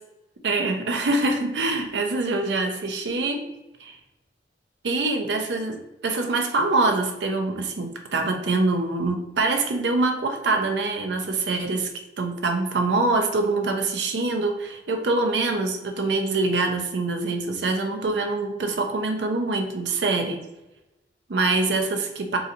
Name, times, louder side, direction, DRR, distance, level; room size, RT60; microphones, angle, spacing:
voice 1, 0.4-3.4 3.8-4.0 4.8-11.9 12.2-20.4 21.3-22.4, right 3 dB, 70° right, 4 dB, 0.5 m, -24 dB
3.9 x 2.8 x 2.6 m, 0.97 s
head